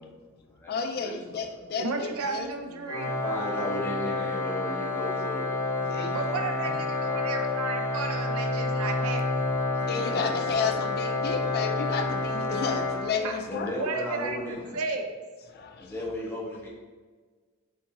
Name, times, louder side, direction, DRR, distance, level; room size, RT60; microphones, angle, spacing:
voice 1, 0.7-2.5 5.9-6.4 9.9-13.8, left 5 dB, 45° left, 0.4 m, -32 dB
voice 2, 1.4-3.1 6.1-9.5 13.2-15.1, right 4 dB, 85° right, 0.6 m, -34 dB
Organ, 2.9-13.7, left 3 dB, 30° left, 1.4 m, -29 dB
voice 3, 3.2-5.5 9.8-10.3 13.5-14.8 15.8-16.7, left 1 dB, 10° left, 1.0 m, -35 dB
5.7 x 2.7 x 2.9 m
head